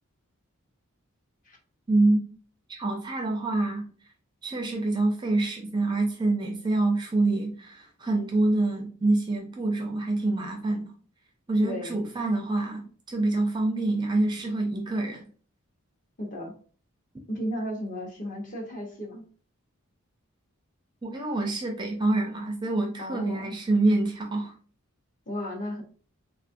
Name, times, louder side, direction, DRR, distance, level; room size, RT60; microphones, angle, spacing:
voice 1, 1.9-2.2 2.7-3.9 4.4-10.9 11.5-15.2 21.0-24.5, right 2 dB, 20° right, 2 dB, 0.4 m, -26 dB
voice 2, 11.6-12.0 16.2-16.5 17.3-19.2 23.0-23.5 25.3-25.8, equal, 35° left, 1 dB, 0.8 m, -34 dB
3.4 x 2.4 x 2.5 m, 0.41 s
head